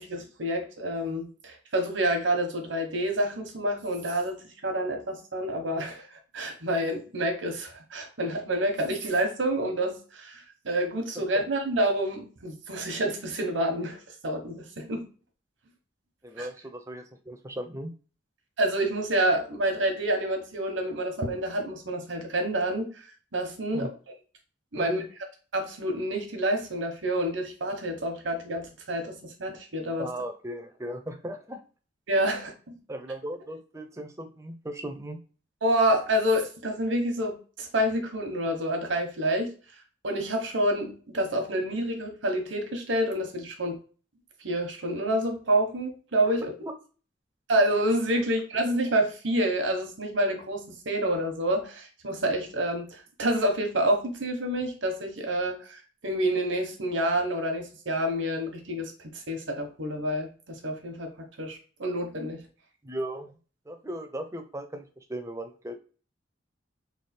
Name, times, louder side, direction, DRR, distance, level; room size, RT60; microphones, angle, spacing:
voice 1, 0.0-4.4 4.6-15.1 16.4-16.5 18.6-23.1 23.3-23.9 24.7-25.0 25.5-30.1 32.1-32.8 35.6-39.5 40.0-43.8 44.4-46.5 47.5-62.4, right 1 dB, 80° right, 3 dB, 1.0 m, -28 dB
voice 2, 16.2-17.9 23.7-23.9 24.8-25.1 30.0-31.6 32.9-35.2 46.6-46.7 48.2-48.3 62.8-63.4 63.7-65.8, right 1 dB, 15° right, 6 dB, 0.5 m, -37 dB
3.3 x 2.3 x 4.2 m, 0.38 s
head